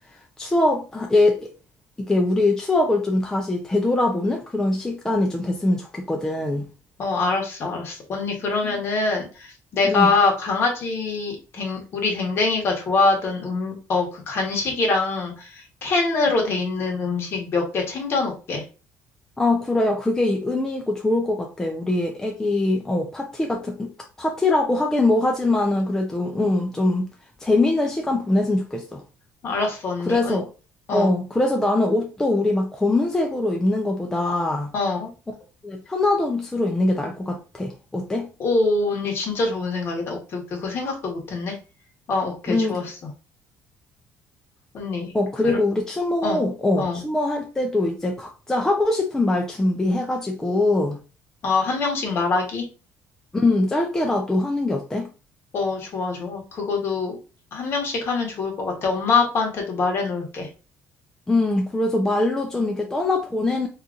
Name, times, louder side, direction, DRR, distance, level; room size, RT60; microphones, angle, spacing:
voice 1, 0.1-1.5 2.0-6.7 8.6-8.8 9.8-10.1 19.4-23.9 24.2-27.1 27.4-29.0 30.1-30.5 30.9-34.7 35.6-38.3 42.5-42.8 45.1-51.0 53.3-55.1 61.3-63.7, left 2 dB, 10° left, 0.4 m, -22 dB
voice 2, 7.0-18.6 29.4-30.4 30.9-31.1 34.7-35.1 38.4-41.5 42.1-42.8 44.7-45.1 45.4-45.6 46.2-46.4 46.8-47.0 51.4-52.6 55.5-57.2 57.5-60.5, left 3 dB, 45° left, 1.2 m, -24 dB
2.7 x 2.5 x 3.7 m
cardioid pair, 140°, 6 cm